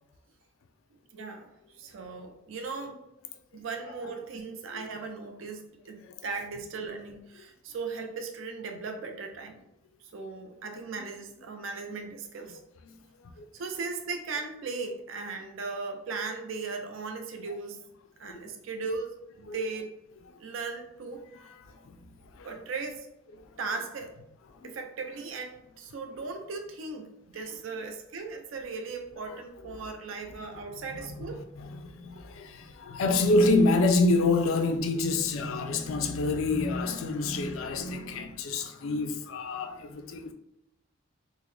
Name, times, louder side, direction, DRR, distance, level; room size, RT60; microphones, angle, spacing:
voice 1, 1.1-1.5 1.8-3.0 3.5-9.7 10.1-12.6 13.5-17.8 18.2-19.9 20.4-21.2 22.4-23.1 23.6-24.1 24.6-31.4, right 4 dB, 75° right, 0.4 m, -37 dB
voice 2, 21.4-22.5 23.4-23.5 24.5-24.7 29.3-29.4 29.7-29.9 30.9-40.3, left 2 dB, 85° left, 0.4 m, -28 dB
3.6 x 2.0 x 3.2 m
head